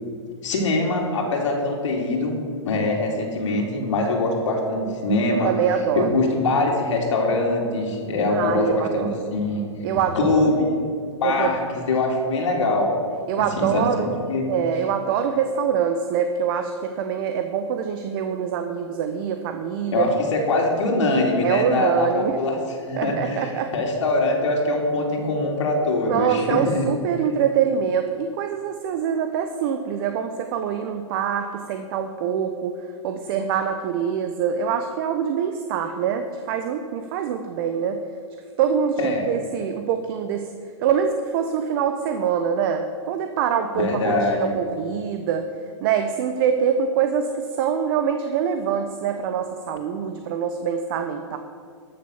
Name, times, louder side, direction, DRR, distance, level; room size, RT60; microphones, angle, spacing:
voice 1, 0.4-2.3 2.6-5.5 5.9-9.6 10.2-10.7 11.2-13.0 13.6-14.4 19.9-22.6 22.9-26.9 39.0-39.3 43.7-44.5, left 2 dB, 75° left, 0 dB, 2.7 m, -23 dB
voice 2, 5.3-6.1 8.3-9.2 9.8-10.5 11.2-11.6 13.3-14.1 14.5-20.1 21.4-22.4 23.0-23.7 26.1-32.8 33.0-38.0 38.6-40.5 40.8-45.5 45.8-51.4, right 7 dB, 45° right, 7 dB, 0.8 m, -24 dB
13.0 x 6.6 x 7.0 m, 2.2 s
hypercardioid pair, 140°, 16 cm